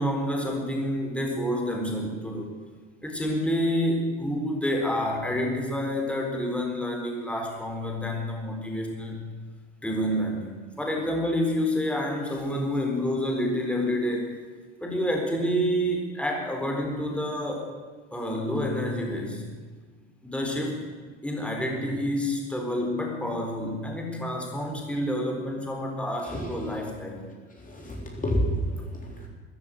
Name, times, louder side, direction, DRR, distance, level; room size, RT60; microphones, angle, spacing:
voice 1, 0.0-2.5 3.0-9.3 9.8-14.3 14.8-17.7 18.1-19.4 20.2-20.8 21.2-27.2, equal, 5° left, 1 dB, 4.0 m, -28 dB
voice 2, 26.3-26.8 27.6-29.3, equal, 25° left, 0 dB, 3.8 m, -30 dB
14.0 x 11.0 x 9.3 m, 1.5 s
hypercardioid pair, 85°, 34 cm